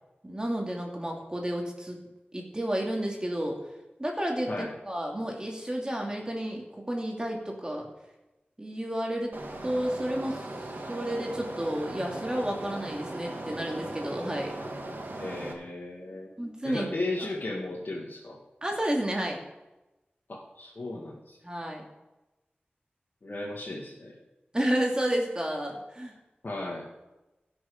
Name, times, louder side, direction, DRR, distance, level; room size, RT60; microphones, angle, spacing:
voice 1, 0.2-2.0 2.3-3.6 4.0-7.9 8.6-9.4 9.6-10.5 10.9-14.6 16.4-16.9 18.6-19.4 21.4-21.8 24.5-26.1, right 1 dB, 20° right, 0 dB, 2.5 m, -31 dB
sound 1, 9.3-15.5, right 1 dB, 65° right, 1.9 m, -38 dB
voice 2, 15.2-16.3 16.6-18.4 20.3-21.4 23.2-24.2 26.4-26.9, left 2 dB, 65° left, -5 dB, 2.1 m, -35 dB
16.5 x 6.4 x 5.1 m, 1.0 s
wide cardioid pair, 65°, 4 cm